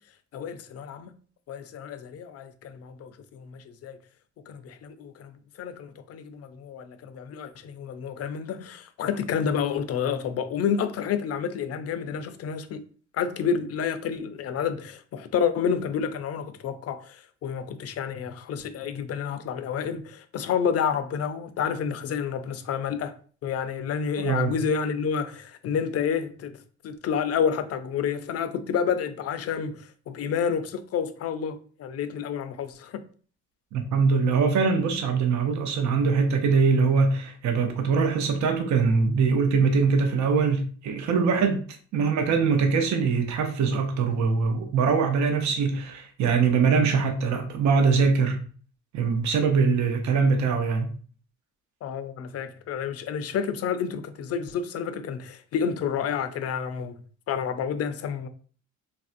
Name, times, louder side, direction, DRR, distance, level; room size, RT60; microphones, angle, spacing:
voice 1, 0.3-1.1 1.5-4.0 4.5-12.8 13.1-23.1 23.4-26.6 26.8-33.0 51.8-57.0 57.3-58.3, left 7 dB, 55° left, 0.4 m, -29 dB
voice 2, 24.2-24.5 33.7-41.6 41.9-48.4 48.9-50.9, right 5 dB, 70° right, 0.6 m, -23 dB
3.3 x 2.5 x 2.5 m
cardioid pair, 90°, 30 cm